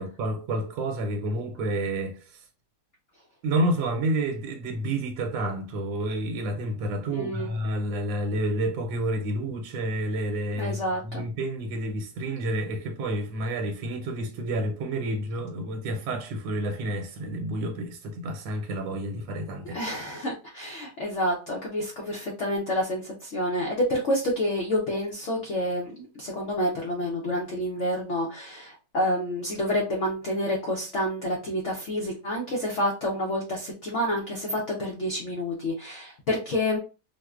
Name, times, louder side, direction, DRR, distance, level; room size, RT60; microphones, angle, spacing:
voice 1, 0.0-2.5 3.4-19.8, right 1 dB, 75° right, 1.4 m, -29 dB
voice 2, 7.1-7.5 10.6-11.2 19.6-36.8, left 1 dB, 85° left, 0.6 m, -28 dB
4.6 x 2.1 x 2.4 m
omnidirectional pair, 2.1 m